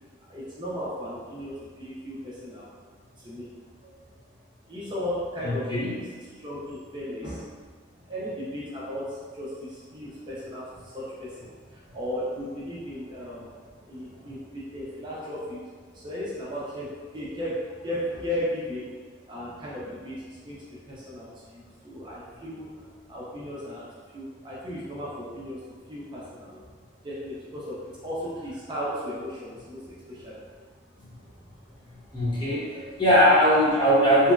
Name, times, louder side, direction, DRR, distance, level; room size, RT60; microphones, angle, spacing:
voice 1, 0.3-2.7 3.2-3.5 3.8-3.9 4.7-7.5 8.0-13.5 13.8-19.0 19.3-23.9 24.1-25.6 25.9-26.6 27.0-30.4 32.5-33.0, equal, 25° right, -8 dB, 0.5 m, -36 dB
voice 2, 5.4-6.0 32.1-32.7 33.0-34.3, equal, 25° left, -8 dB, 0.6 m, -20 dB
2.9 x 2.6 x 2.2 m, 1.5 s
head